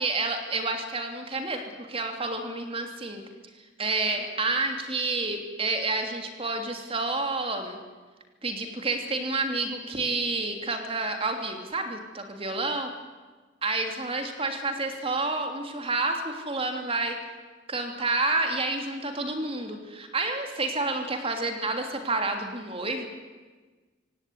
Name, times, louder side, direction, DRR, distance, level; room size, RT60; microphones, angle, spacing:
voice 1, 0.0-3.2 3.8-7.8 8.4-12.9 13.6-17.2 17.7-23.1, right 3 dB, 30° right, 4 dB, 3.0 m, -29 dB
25.5 x 17.0 x 9.5 m, 1.3 s
head